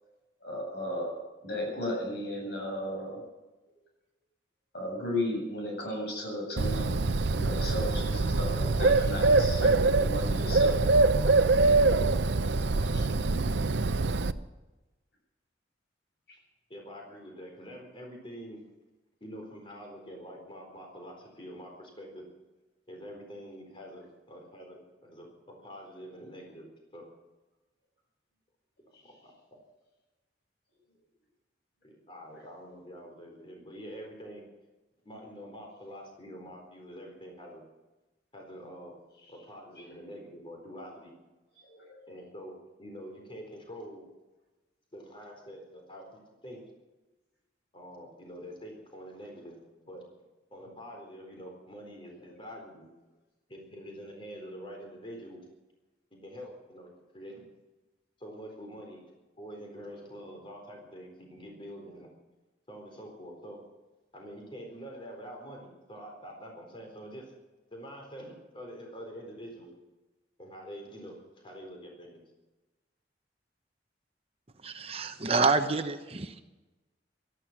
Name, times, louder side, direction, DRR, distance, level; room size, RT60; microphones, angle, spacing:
voice 1, 0.4-3.2 4.7-7.0 7.2-10.8 12.8-13.1 41.7-42.0, left 1 dB, 65° left, 0 dB, 7.7 m, -35 dB
Bird, 6.6-14.3, right 3 dB, 75° right, 0.7 m, -24 dB
voice 2, 16.7-18.6 19.2-22.2 22.9-25.3 25.6-26.7 26.9-27.0 29.0-29.3 31.8-34.4 35.0-37.6 38.3-38.9 39.3-41.1 42.1-44.0 44.9-46.6 47.7-49.6 49.8-50.1 50.5-52.9 53.5-55.4 56.2-57.4 58.2-59.0 59.4-62.1 62.7-63.6 64.1-67.3 67.7-69.7 70.4-72.2, equal, 30° left, 1 dB, 4.2 m, -46 dB
voice 3, 74.6-76.4, right 4 dB, 35° right, 8 dB, 0.9 m, -28 dB
18.0 x 13.5 x 6.0 m, 1.1 s
head